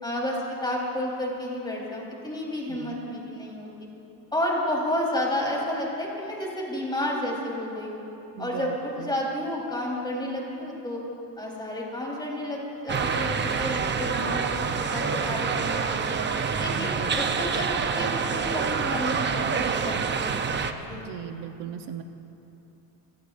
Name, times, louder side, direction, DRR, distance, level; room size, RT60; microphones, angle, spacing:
voice 1, 0.0-3.7 4.3-8.0 8.4-11.0 11.4-16.1 16.6-17.7 18.0-20.5 20.9-21.0, left 1 dB, 10° left, -3 dB, 4.0 m, -31 dB
voice 2, 8.4-9.1 16.8-17.1 20.9-22.0, right 8 dB, 65° right, 6 dB, 1.0 m, -38 dB
sound 1, 12.9-20.7, right 5 dB, 25° right, 0.7 m, -27 dB
28.5 x 18.5 x 2.6 m, 3.0 s
cardioid pair, 140°, 44 cm